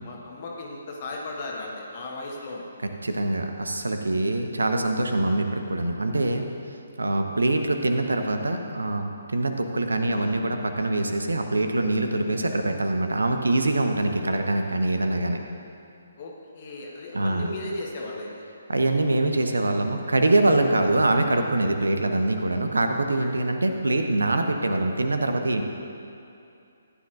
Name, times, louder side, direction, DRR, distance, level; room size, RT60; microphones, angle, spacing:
voice 1, 0.0-2.6 5.2-5.4 10.1-10.3 16.1-18.4 23.2-23.4, left 2 dB, 35° left, -2 dB, 1.3 m, -36 dB
voice 2, 3.0-6.5 7.0-15.4 17.1-17.5 18.7-25.6, right 2 dB, 70° right, 5 dB, 0.9 m, -24 dB
15.0 x 10.0 x 2.5 m, 2.6 s
figure-of-eight pair, 135°, 0 cm